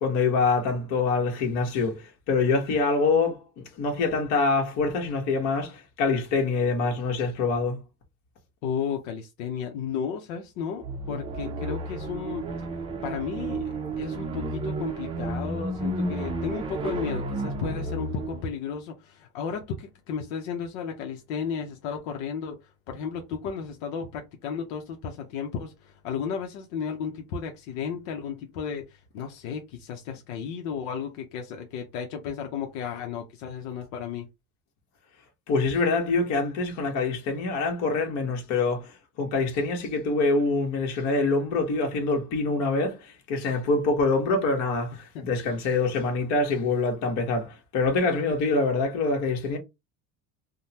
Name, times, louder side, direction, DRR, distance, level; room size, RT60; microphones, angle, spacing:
voice 1, 0.0-7.8 35.5-49.6, left 3 dB, 60° left, 1.3 m, -25 dB
voice 2, 8.6-12.5 13.0-34.3 45.1-45.2, left 6 dB, 85° left, 0.8 m, -34 dB
sound 1, 10.8-18.5, right 2 dB, 15° right, 0.5 m, -32 dB
3.6 x 2.2 x 2.8 m
cardioid pair, 155°, 32 cm